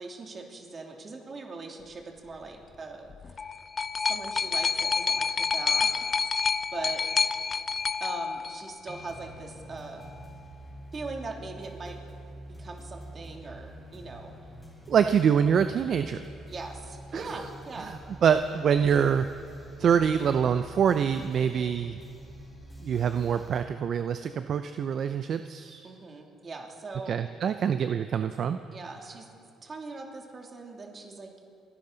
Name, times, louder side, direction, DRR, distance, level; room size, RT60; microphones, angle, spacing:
voice 1, 0.0-3.4 4.0-6.1 6.7-7.0 8.0-10.1 10.9-12.0 12.5-14.3 16.5-17.9 21.4-21.7 25.8-27.1 28.7-29.3 29.6-31.3, right 3 dB, 40° right, 1 dB, 2.7 m, -40 dB
sound 1, 3.1-9.1 10.0-10.1, left 5 dB, 35° left, 0.4 m, -28 dB
sound 2, 8.9-23.6, equal, 10° left, 4.6 m, -46 dB
voice 2, 14.9-16.2 17.1-17.2 18.2-19.3 19.8-22.0 22.8-25.8 27.1-28.6, right 7 dB, 55° right, 10 dB, 0.5 m, -25 dB
30.0 x 11.0 x 4.0 m, 2.7 s
supercardioid pair, 80°, 0 cm